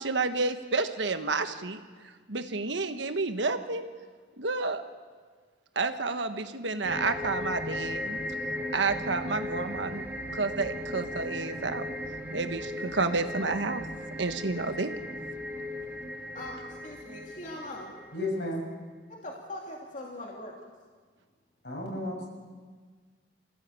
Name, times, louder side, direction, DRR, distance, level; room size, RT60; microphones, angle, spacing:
voice 1, 0.0-3.8 4.4-4.8 5.7-8.2 8.7-10.0 10.3-11.9 12.3-13.9 14.2-15.0, right 3 dB, 75° right, 8 dB, 1.4 m, -30 dB
sound 1, 6.8-18.4, left 1 dB, 10° right, 1.7 m, -37 dB
voice 2, 16.3-17.9 19.2-20.5, left 1 dB, 40° left, -1 dB, 2.6 m, -41 dB
voice 3, 18.1-18.6 21.6-22.3, left 1 dB, 65° left, -1 dB, 7.3 m, -32 dB
26.0 x 16.5 x 8.4 m, 1.5 s
head